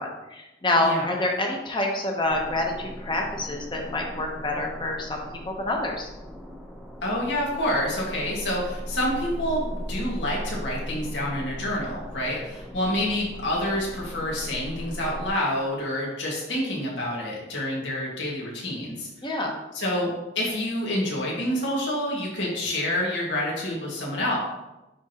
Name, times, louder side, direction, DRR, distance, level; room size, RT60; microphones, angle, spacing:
voice 1, 0.0-6.1 19.2-19.5, left 2 dB, 25° left, 1 dB, 0.9 m, -27 dB
voice 2, 0.8-1.1 7.0-19.1 19.7-24.4, left 1 dB, 80° left, -3 dB, 1.9 m, -28 dB
sound 1, 2.2-15.3, equal, ahead, 0.7 m, -38 dB
9.7 x 3.6 x 2.9 m, 0.99 s
head